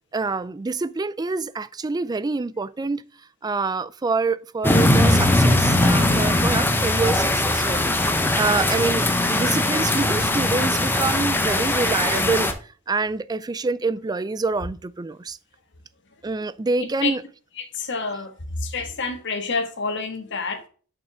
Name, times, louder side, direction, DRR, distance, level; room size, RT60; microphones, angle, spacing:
voice 1, 0.1-3.0 3.4-7.9 8.3-12.5 12.9-15.4 16.2-17.2, right 3 dB, 20° right, 0.3 m, -26 dB
sound 1, 4.6-12.5, left 1 dB, 10° left, 0.8 m, -20 dB
voice 2, 16.8-17.1 17.6-20.7, left 4 dB, 55° left, 1.5 m, -28 dB
6.8 x 5.6 x 3.4 m
head